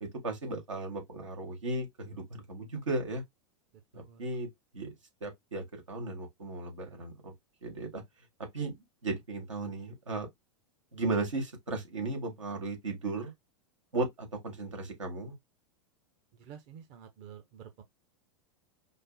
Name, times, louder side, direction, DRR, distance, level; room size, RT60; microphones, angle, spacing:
voice 1, 0.0-3.2 3.9-4.5 4.7-4.9 5.2-7.3 7.6-8.0 8.4-8.7 9.0-10.3 10.9-13.3 13.9-15.4, right 2 dB, 85° right, 1.9 m, -35 dB
voice 2, 3.9-4.3 16.3-17.8, right 8 dB, 45° right, 0.9 m, -50 dB
5.2 x 2.1 x 4.0 m
hypercardioid pair, 100°, 16 cm